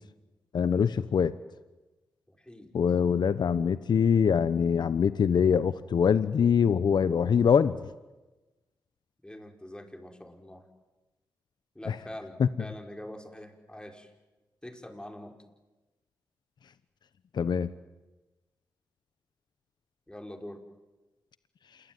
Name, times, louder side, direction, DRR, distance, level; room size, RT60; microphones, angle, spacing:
voice 1, 0.5-1.3 2.7-7.9 12.4-12.5 17.3-17.7, left 7 dB, 65° left, 14 dB, 1.0 m, -24 dB
voice 2, 2.3-2.7 9.2-10.6 11.7-14.1 14.6-15.3 20.1-20.6, left 1 dB, 10° left, 3 dB, 5.7 m, -44 dB
27.5 x 22.0 x 9.3 m, 1.1 s
supercardioid pair, 45°, 8 cm